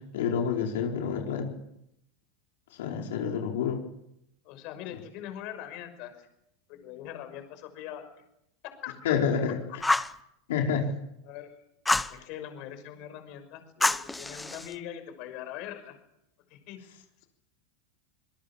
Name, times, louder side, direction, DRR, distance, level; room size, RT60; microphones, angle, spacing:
voice 1, 0.0-1.5 2.8-3.8 9.0-9.6 10.5-10.9, left 7 dB, 80° left, 1 dB, 4.7 m, -28 dB
voice 2, 4.4-6.3 6.7-8.1 8.8-9.2 11.2-11.5 12.1-16.0 16.5-16.8, left 11 dB, 50° left, 7 dB, 5.9 m, -42 dB
Fire, 9.8-10.2 11.9-12.2 13.8-14.7, left 2 dB, 5° left, 0.9 m, -27 dB
27.0 x 21.5 x 7.4 m, 0.80 s
supercardioid pair, 150°, 0 cm